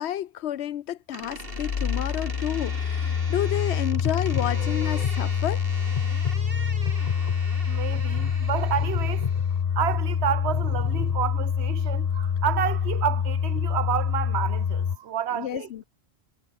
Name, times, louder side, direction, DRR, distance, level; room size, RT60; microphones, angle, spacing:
voice 1, 0.0-5.6 15.3-15.8, left 11 dB, 80° left, 0.9 m, -30 dB
Door, 1.1-9.6, right 3 dB, 60° right, 3.1 m, -41 dB
sound 1, 1.3-15.0, left 7 dB, 45° left, 0.6 m, -26 dB
voice 2, 7.7-9.3 9.7-15.8, right 10 dB, 75° right, 1.1 m, -30 dB
omnidirectional pair, 1.1 m